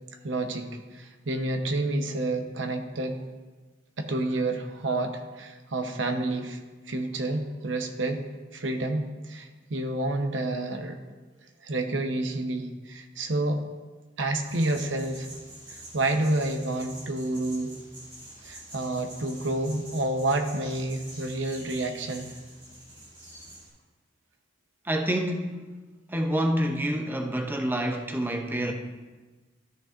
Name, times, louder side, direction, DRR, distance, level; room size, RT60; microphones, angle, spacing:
voice 1, 0.2-3.2 4.0-6.6 6.9-8.2 8.5-11.0 11.6-13.6 14.2-15.3 15.7-17.7 18.4-22.3, right 2 dB, 75° right, 0.8 m, -29 dB
sound 1, 14.4-23.7, right 1 dB, 30° right, 2.9 m, -46 dB
voice 2, 24.8-25.6 26.1-28.7, right 1 dB, 10° right, 0.6 m, -27 dB
13.0 x 6.9 x 2.5 m
head